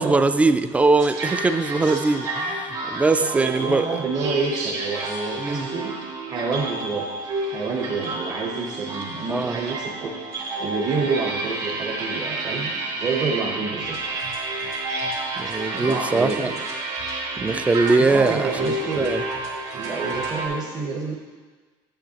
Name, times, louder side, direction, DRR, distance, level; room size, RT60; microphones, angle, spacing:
voice 1, 0.0-3.9 5.4-5.7 9.3-9.6 15.4-16.5 17.4-19.2, right 3 dB, 15° right, 10 dB, 0.3 m, -21 dB
sound 1, 1.0-20.5, right 2 dB, 55° right, 2.4 m, -30 dB
voice 2, 3.2-5.9 6.3-7.1 7.4-10.2 10.6-14.0 15.7-16.6 18.0-19.1 19.7-21.2, right 4 dB, 40° right, -2 dB, 0.9 m, -28 dB
9.0 x 8.1 x 2.9 m, 1.4 s
cardioid pair, 125°, 10 cm